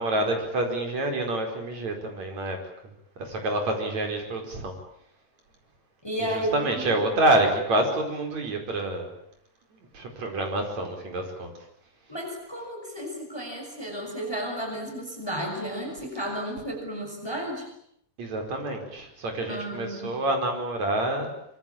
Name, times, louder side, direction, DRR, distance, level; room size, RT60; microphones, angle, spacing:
voice 1, 0.0-2.6 3.2-4.7 6.2-9.1 9.9-11.5 18.2-21.3, right 1 dB, 55° right, 4 dB, 6.0 m, -27 dB
voice 2, 6.0-7.0 12.1-17.7 19.5-20.1, equal, 5° left, 3 dB, 6.0 m, -33 dB
25.0 x 23.5 x 8.7 m, 0.72 s
omnidirectional pair, 3.8 m